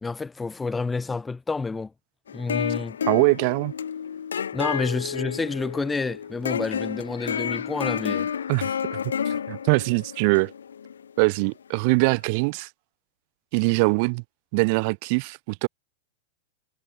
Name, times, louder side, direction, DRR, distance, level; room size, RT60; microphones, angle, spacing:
voice 1, 0.0-1.9 2.3-3.0 4.5-8.3, left 4 dB, 10° left, 2.1 m, -29 dB
sound 1, 2.3-11.5, left 7 dB, 90° left, 1.8 m, -30 dB
voice 2, 3.1-3.7 8.5-9.0 9.2-10.5 11.2-12.7 13.5-14.2 14.5-15.7, right 31 dB, 55° right, 2.9 m, -22 dB
hypercardioid pair, 115°, 0 cm